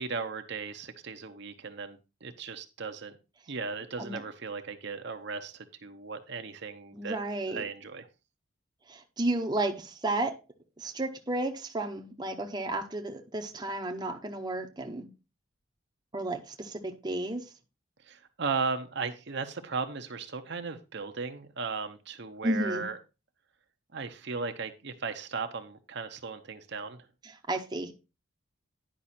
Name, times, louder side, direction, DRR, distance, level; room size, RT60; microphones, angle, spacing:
voice 1, 0.0-3.1 3.5-7.2 7.5-8.1 18.0-23.0 23.9-27.1, right 4 dB, 55° right, 0.8 m, -36 dB
voice 2, 6.9-7.6 8.9-10.3 10.8-15.1 16.1-17.4 22.4-22.8 27.5-27.9, right 2 dB, 20° right, 0.8 m, -32 dB
10.0 x 5.4 x 4.2 m
head